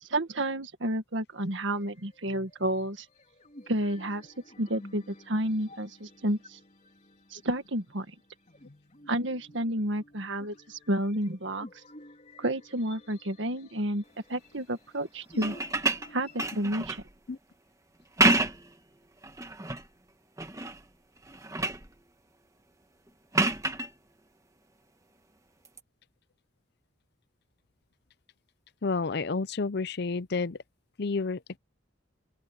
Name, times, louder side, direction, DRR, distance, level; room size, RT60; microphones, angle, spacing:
voice 1, 0.0-3.1 3.7-4.3 4.6-6.6 7.3-8.1 9.1-11.7 12.4-14.0 14.3-15.6 16.1-17.0, right 1 dB, 65° right, 1.8 m, -30 dB
sound 1, 1.7-16.5, left 1 dB, 35° left, 3.3 m, -53 dB
sound 2, 15.3-17.1 18.0-18.7 19.2-19.9 20.4-20.8 21.2-21.9 23.3-23.9 25.6-25.8, right 2 dB, 15° right, 1.4 m, -28 dB
voice 2, 28.8-30.6 31.0-31.6, left 4 dB, 55° left, 0.6 m, -30 dB
open air
head